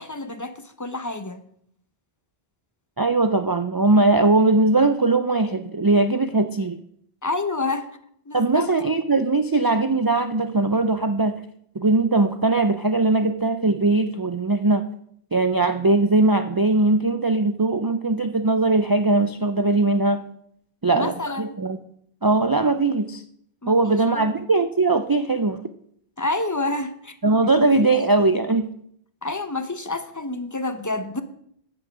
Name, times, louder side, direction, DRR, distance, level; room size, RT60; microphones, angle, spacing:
voice 1, 0.0-1.4 7.2-7.9 8.3-8.7 20.9-21.6 23.6-24.3 26.2-27.2 27.4-27.9 29.2-31.2, left 2 dB, 20° left, 0.7 m, -29 dB
voice 2, 3.0-6.8 8.3-11.4 11.8-14.9 15.3-20.2 20.8-21.8 22.2-23.2 23.7-25.6 27.2-28.7, right 2 dB, 30° right, 0.4 m, -20 dB
9.7 x 8.2 x 6.1 m
omnidirectional pair, 1.1 m